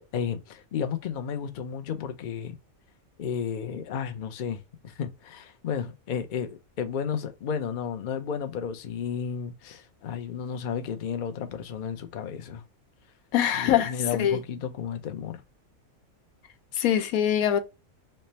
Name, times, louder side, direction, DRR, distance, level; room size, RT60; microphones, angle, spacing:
voice 1, 0.0-2.6 3.2-12.6 13.5-15.4, left 7 dB, 60° left, 0.5 m, -33 dB
voice 2, 13.3-13.9 14.2-14.4 16.8-17.6, left 10 dB, 90° left, 1.0 m, -23 dB
3.3 x 2.1 x 4.0 m
omnidirectional pair, 1.4 m